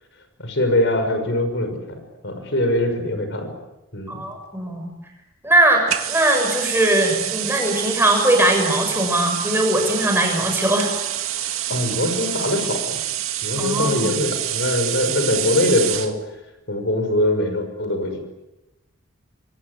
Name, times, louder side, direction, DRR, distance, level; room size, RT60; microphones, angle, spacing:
voice 1, 0.4-3.5 3.9-4.2 11.7-13.0 13.4-16.2 16.7-18.2, left 1 dB, 60° left, 7 dB, 5.9 m, -22 dB
voice 2, 4.1-4.9 5.4-10.9 13.6-14.2, right 1 dB, 10° right, 3 dB, 6.9 m, -20 dB
sound 1, 5.9-16.1, right 12 dB, 90° right, 2.1 m, -27 dB
26.0 x 25.5 x 8.2 m, 0.95 s
head